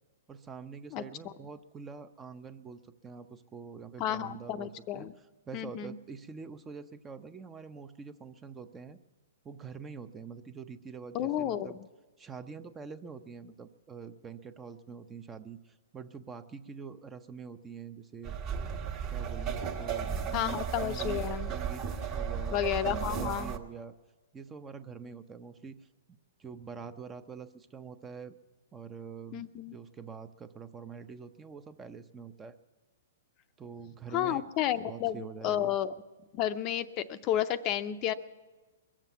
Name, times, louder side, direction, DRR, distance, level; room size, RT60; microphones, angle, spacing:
voice 1, 0.3-9.0 9.4-11.8 12.2-18.4 19.1-21.2 21.5-24.0 24.3-25.9 26.4-28.4 28.7-32.6 33.6-34.5 34.8-35.8, right 6 dB, 15° right, 11 dB, 0.6 m, -45 dB
voice 2, 0.9-1.3 4.0-5.1 5.5-6.0 11.1-11.7 20.3-21.5 22.5-23.5 29.3-29.8 34.1-35.9 36.3-38.1, left 11 dB, 35° left, 11 dB, 0.6 m, -32 dB
sound 1, 18.2-23.6, right 7 dB, 35° right, 1.4 m, -34 dB
22.0 x 7.5 x 8.3 m, 1.2 s
hypercardioid pair, 140°, 0 cm